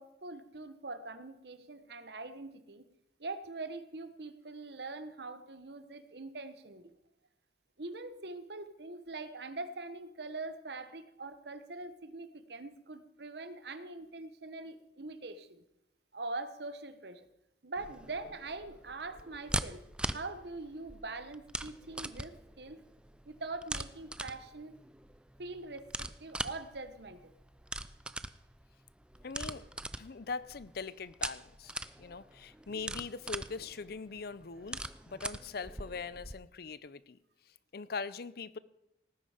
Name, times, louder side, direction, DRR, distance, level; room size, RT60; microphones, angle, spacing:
voice 1, 0.0-2.9 3.2-6.9 7.8-15.6 16.1-17.3 17.6-19.8 20.1-22.8 23.2-24.8 25.4-27.3, right 3 dB, 65° right, 11 dB, 1.2 m, -43 dB
sound 1, 17.8-36.3, right 1 dB, 5° right, 0.4 m, -42 dB
voice 2, 29.2-29.7 30.0-37.2 37.5-38.6, left 4 dB, 60° left, 17 dB, 0.6 m, -42 dB
18.5 x 9.8 x 5.0 m, 0.86 s
head